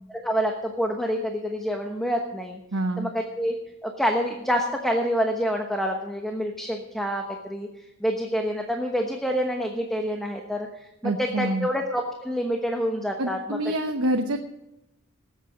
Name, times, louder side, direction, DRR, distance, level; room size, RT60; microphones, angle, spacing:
voice 1, 0.1-2.6 3.0-3.5 3.8-7.7 8.0-13.6, equal, ahead, 2 dB, 1.0 m, -27 dB
voice 2, 2.7-3.1 11.0-11.7 13.2-14.4, right 1 dB, 80° right, 4 dB, 1.0 m, -26 dB
19.5 x 8.3 x 5.0 m, 0.92 s
head